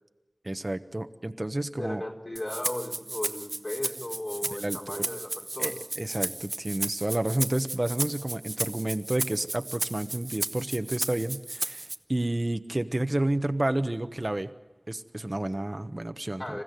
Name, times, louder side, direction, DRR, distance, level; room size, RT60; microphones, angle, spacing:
voice 1, 0.4-2.0 4.6-5.0 5.6-14.5 14.9-16.6, right 1 dB, 45° right, 9 dB, 1.1 m, -30 dB
voice 2, 1.8-5.8 16.4-16.6, left 1 dB, 60° left, -1 dB, 4.3 m, -36 dB
Rattle (instrument), 2.4-12.0, right 2 dB, 65° right, 0.9 m, -34 dB
27.5 x 15.0 x 9.3 m, 1.0 s
wide cardioid pair, 45°, 0 cm